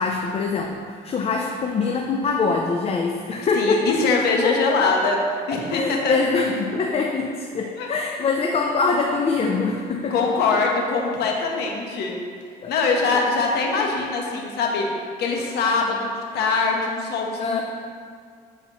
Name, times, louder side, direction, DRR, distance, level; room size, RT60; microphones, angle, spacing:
voice 1, 0.0-4.0 4.4-4.6 4.8-4.9 5.7-10.3 12.6-12.7 13.1-13.2 13.8-13.9 17.4-17.6, left 4 dB, 35° left, 1 dB, 0.5 m, -24 dB
voice 2, 3.5-5.2 5.5-6.2 7.8-7.9 10.1-12.1 12.7-17.6, left 4 dB, 75° left, 0 dB, 1.1 m, -23 dB
11.0 x 4.2 x 3.0 m, 2.1 s
cardioid pair, 110°, 17 cm